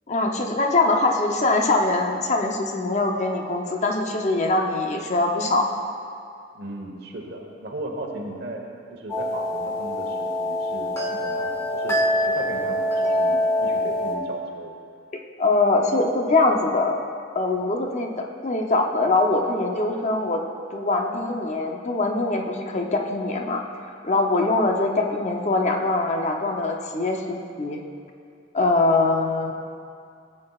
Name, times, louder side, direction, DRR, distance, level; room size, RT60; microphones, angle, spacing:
voice 1, 0.1-5.7 15.4-17.0 17.3-20.4 20.7-23.6 24.0-27.8 28.5-29.5, left 2 dB, 35° left, 2 dB, 0.7 m, -23 dB
voice 2, 6.5-8.6 8.9-14.7, right 1 dB, 55° right, 1 dB, 1.2 m, -36 dB
sound 1, 9.1-14.2, left 1 dB, 15° left, 1.1 m, -24 dB
17.0 x 8.6 x 2.4 m, 2.4 s
head